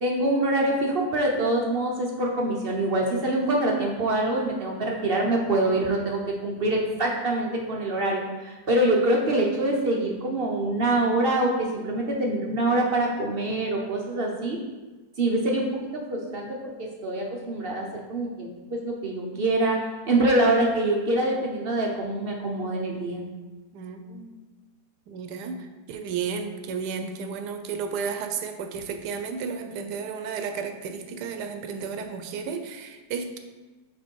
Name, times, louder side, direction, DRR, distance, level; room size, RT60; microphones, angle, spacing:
voice 1, 0.0-14.6 15.2-19.8 20.0-23.2, right 1 dB, 50° right, -1 dB, 0.7 m, -25 dB
voice 2, 23.7-24.4 25.1-33.4, right 6 dB, 80° right, 7 dB, 1.2 m, -33 dB
5.2 x 4.5 x 4.5 m, 1.2 s
omnidirectional pair, 1.8 m